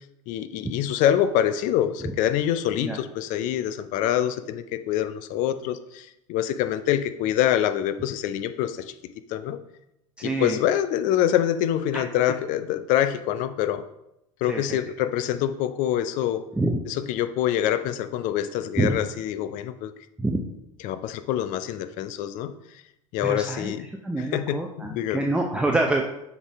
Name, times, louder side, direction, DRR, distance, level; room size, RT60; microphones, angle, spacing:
voice 1, 0.3-8.9 9.3-9.6 10.2-13.8 14.4-16.5 16.9-19.9 20.8-22.5 23.1-23.9 24.2-25.3, left 11 dB, 50° left, 12 dB, 0.5 m, -25 dB
voice 2, 10.2-10.6 11.9-12.0 14.5-14.6 16.6-16.8 18.8-18.9 20.2-20.4 23.2-23.7 24.0-26.1, right 2 dB, 5° right, 1 dB, 0.6 m, -26 dB
7.1 x 4.0 x 3.5 m, 0.84 s
hypercardioid pair, 75°, 17 cm